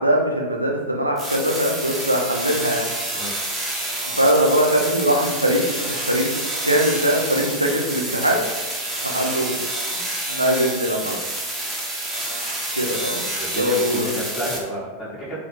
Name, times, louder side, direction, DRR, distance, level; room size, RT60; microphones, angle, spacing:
voice 1, 0.0-2.8 4.2-6.3 6.6-8.4 9.0-9.6 9.9-10.0 10.3-11.2 12.7-13.2 13.6-14.1, equal, 90° right, 0 dB, 0.3 m, -21 dB
sound 1, 1.2-14.6, right 1 dB, 10° right, 0.6 m, -28 dB
voice 2, 13.4-15.4, equal, 30° left, -9 dB, 0.7 m, -30 dB
2.2 x 2.0 x 2.8 m, 1.2 s
figure-of-eight pair, 90°, 0 cm